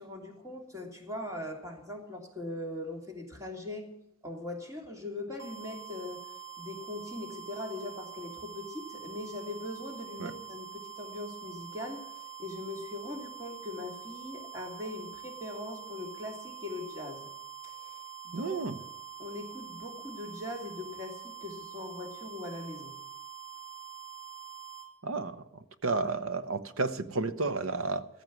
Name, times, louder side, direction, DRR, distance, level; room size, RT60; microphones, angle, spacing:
voice 1, 0.0-3.9 4.2-6.2 6.6-17.3 17.6-18.0 18.2-18.9 19.2-22.9, left 2 dB, 15° right, 2.7 m, -41 dB
sound 1, 5.4-24.9, right 9 dB, 55° right, 4.1 m, -45 dB
voice 2, 18.3-18.8 25.0-25.4 25.8-28.1, right 3 dB, 80° right, 1.0 m, -31 dB
15.0 x 14.5 x 6.1 m
head